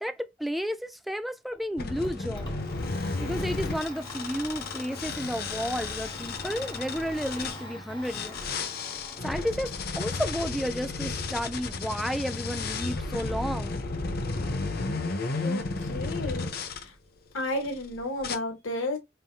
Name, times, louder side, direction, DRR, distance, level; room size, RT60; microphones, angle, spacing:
voice 1, 0.0-2.6 3.2-8.4 9.2-13.8, equal, ahead, 0.3 m, -32 dB
Domestic sounds home sounds, 1.5-17.4, left 1 dB, 25° left, 1.0 m, -46 dB
sound 1, 1.8-7.6 8.1-16.8 17.5-17.8 18.2-18.4, left 3 dB, 50° left, 0.7 m, -33 dB
voice 2, 15.3-16.9 17.3-19.0, left 2 dB, 85° left, 1.0 m, -33 dB
5.6 x 2.6 x 2.4 m
head